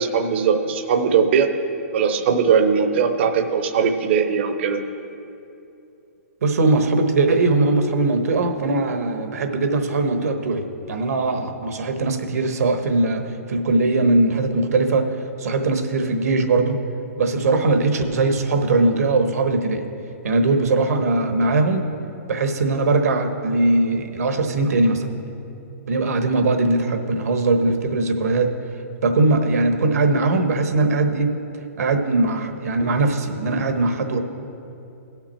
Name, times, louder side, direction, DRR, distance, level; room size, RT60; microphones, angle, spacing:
voice 1, 0.0-1.5 1.9-4.8, right 6 dB, 45° right, 7 dB, 0.7 m, -19 dB
voice 2, 6.4-15.1 15.4-16.8 17.2-19.9 20.2-21.9 22.3-25.1 25.9-28.5 29.0-31.3 31.8-34.2, right 2 dB, 75° right, 6 dB, 1.1 m, -20 dB
16.5 x 5.9 x 4.4 m, 2.8 s
hypercardioid pair, 160°, 8 cm